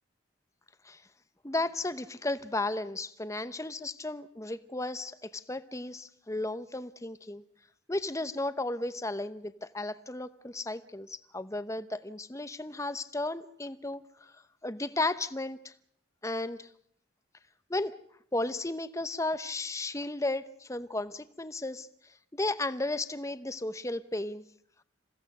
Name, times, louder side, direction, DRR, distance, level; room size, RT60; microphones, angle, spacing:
voice 1, 1.4-7.4 7.9-15.7 16.2-16.7 17.7-17.9 18.3-24.4, left 2 dB, 15° left, 13 dB, 0.8 m, -34 dB
28.0 x 16.5 x 6.6 m, 0.69 s
head